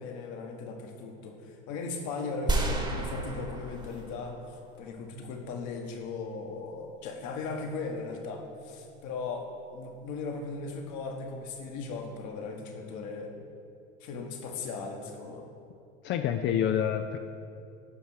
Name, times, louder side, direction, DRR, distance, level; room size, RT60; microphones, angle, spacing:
voice 1, 0.0-9.5 9.7-13.3 14.0-15.5, left 4 dB, 50° left, 3 dB, 1.4 m, -38 dB
sound 1, 2.5-4.8, right 2 dB, 10° right, 1.2 m, -32 dB
voice 2, 16.0-17.2, left 9 dB, 35° left, 7 dB, 0.4 m, -27 dB
10.5 x 5.4 x 4.7 m, 2.5 s
hypercardioid pair, 85°, 36 cm